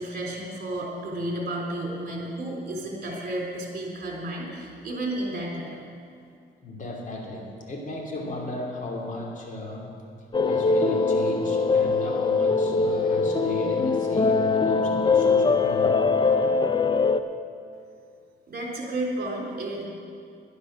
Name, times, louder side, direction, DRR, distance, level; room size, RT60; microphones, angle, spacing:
voice 1, 0.0-5.8 18.5-19.9, right 1 dB, 50° right, -1 dB, 3.8 m, -32 dB
voice 2, 6.6-9.9 10.5-16.0, left 2 dB, 40° left, -1 dB, 2.9 m, -35 dB
sound 1, 10.3-17.2, left 4 dB, 25° left, 0.6 m, -22 dB
11.5 x 11.5 x 6.2 m, 2.4 s
cardioid pair, 90°, 20 cm